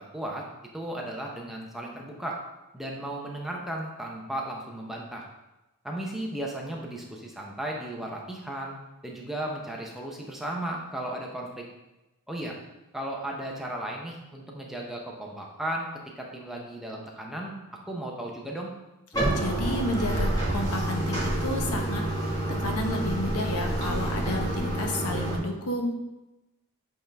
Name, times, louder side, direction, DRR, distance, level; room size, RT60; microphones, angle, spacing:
voice 1, 0.1-0.5 0.7-2.4 2.7-5.3 5.8-11.7 12.3-12.6 12.9-15.9 16.2-17.5 17.9-18.7, right 1 dB, ahead, -2 dB, 0.7 m, -35 dB
Bathtub (filling or washing), 19.1-25.4, right 1 dB, 15° left, 1.5 m, -28 dB
voice 2, 19.3-22.0 22.6-26.0, left 1 dB, 85° left, 3 dB, 0.9 m, -31 dB
7.9 x 3.7 x 3.4 m, 1.0 s
head